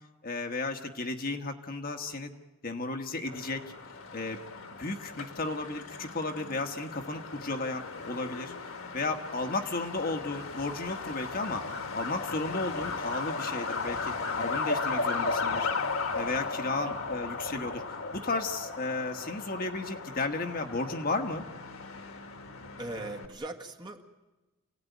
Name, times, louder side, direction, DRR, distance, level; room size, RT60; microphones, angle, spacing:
voice 1, 0.2-2.3 2.6-3.6 4.1-4.4 4.8-8.5 8.9-11.6 11.9-15.7 16.1-17.8 18.1-21.4, left 3 dB, 45° left, 5 dB, 1.5 m, -34 dB
Truck, 3.3-23.3, left 4 dB, 70° left, 1.7 m, -36 dB
voice 2, 22.8-24.1, right 2 dB, 20° right, 2 dB, 1.8 m, -40 dB
28.0 x 17.5 x 9.3 m, 1.1 s
head